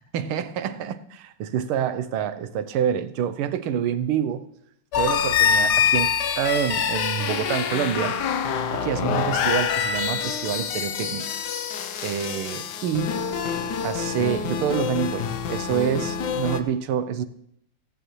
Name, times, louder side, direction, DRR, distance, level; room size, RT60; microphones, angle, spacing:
voice 1, 0.1-4.5 5.0-8.2 8.7-11.3 12.0-13.2 13.8-17.2, right 9 dB, 75° right, 1.6 m, -27 dB
sound 1, 4.9-16.6, left 7 dB, 60° left, 1.2 m, -25 dB
27.5 x 9.2 x 3.2 m
omnidirectional pair, 2.4 m